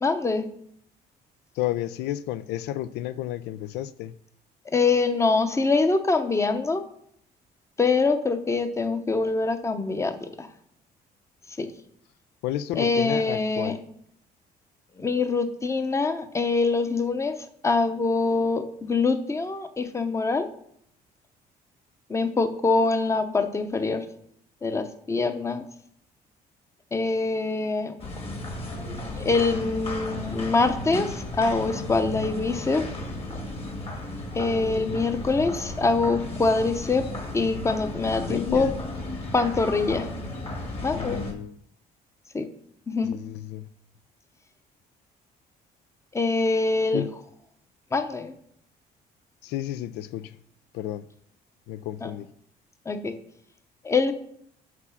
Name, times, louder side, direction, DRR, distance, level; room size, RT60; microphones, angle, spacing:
voice 1, 0.0-0.5 4.7-6.8 7.8-10.5 11.6-11.7 12.8-13.8 15.0-17.3 17.6-20.5 22.1-24.0 24.6-25.6 26.9-27.9 29.1-32.8 34.3-37.1 37.3-38.7 39.3-40.1 40.8-41.2 42.3-42.5 42.9-43.2 46.1-47.0 47.9-48.3 52.0-52.1 52.9-53.1 53.8-54.1, left 3 dB, 15° left, 0.7 m, -24 dB
voice 2, 1.5-4.1 12.4-13.8 38.3-38.7 40.9-41.6 43.0-43.7 46.9-47.1 49.4-50.4 50.7-51.1 51.7-52.3, left 13 dB, 85° left, 0.4 m, -31 dB
sound 1, 28.0-41.3, left 1 dB, 35° left, 1.7 m, -34 dB
6.0 x 6.0 x 5.7 m
cardioid pair, 110°, 17 cm